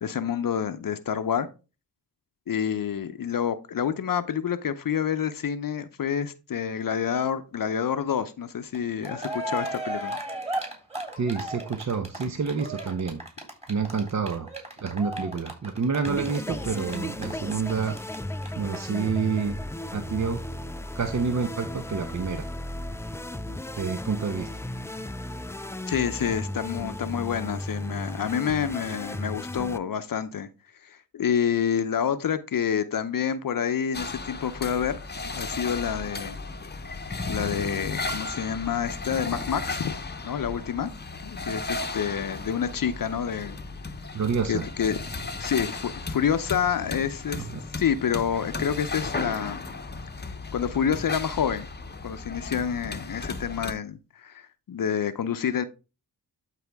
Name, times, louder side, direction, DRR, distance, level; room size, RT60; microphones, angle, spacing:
voice 1, 0.0-1.5 2.5-10.2 25.9-30.5 30.8-35.0 35.3-36.4 37.3-39.9 40.2-40.9 41.2-43.6 44.5-45.0 45.4-47.5 47.8-49.6 50.2-51.7 52.0-55.6, left 8 dB, 55° left, 0.7 m, -28 dB
Cheering, 8.7-8.8 9.0-18.2 18.4-18.5 18.7-18.8, right 1 dB, 15° right, 3.4 m, -35 dB
voice 2, 11.2-13.2 13.7-14.5 14.8-18.0 18.6-19.6 19.9-20.4 20.9-22.5 23.8-24.6 44.1-44.7 47.3-47.6, right 5 dB, 45° right, 0.9 m, -28 dB
sound 1, 16.0-29.8, left 1 dB, 5° left, 0.4 m, -35 dB
sound 2, 33.9-53.7, left 3 dB, 25° left, 0.9 m, -35 dB
12.0 x 4.2 x 3.5 m
cardioid pair, 60°, 40 cm